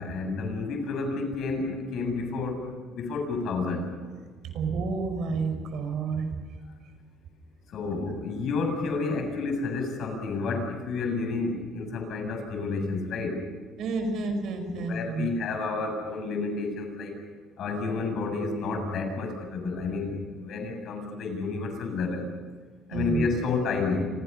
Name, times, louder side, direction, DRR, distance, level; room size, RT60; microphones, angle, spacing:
voice 1, 0.0-3.9 7.7-13.4 14.5-17.2 17.6-22.3 22.9-24.1, left 3 dB, 55° left, 4 dB, 7.5 m, -30 dB
voice 2, 4.5-6.3 13.8-15.3 22.9-23.2, right 4 dB, 65° right, 6 dB, 5.6 m, -30 dB
30.0 x 27.0 x 5.6 m, 1.5 s
cardioid pair, 130°, 0 cm